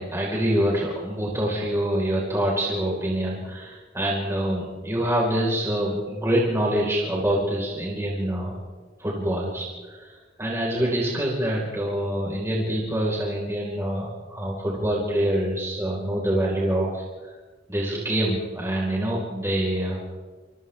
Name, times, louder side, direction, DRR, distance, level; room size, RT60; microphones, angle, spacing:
voice 1, 0.0-8.5 9.0-10.1 10.4-17.0 17.7-20.0, right 1 dB, 15° right, -4 dB, 4.7 m, -25 dB
28.5 x 28.0 x 3.6 m, 1.4 s
head